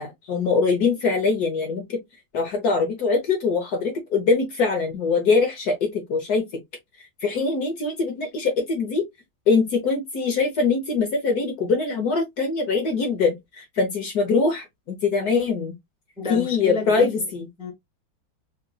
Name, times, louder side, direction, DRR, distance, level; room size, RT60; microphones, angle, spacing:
voice 1, 0.0-2.0 2.3-6.6 7.0-9.0 9.5-15.7 16.3-17.5, left 4 dB, 60° left, 1.1 m, -23 dB
voice 2, 16.2-17.2 17.6-17.7, left 4 dB, 5° right, 0.5 m, -29 dB
3.8 x 2.8 x 2.2 m
omnidirectional pair, 2.3 m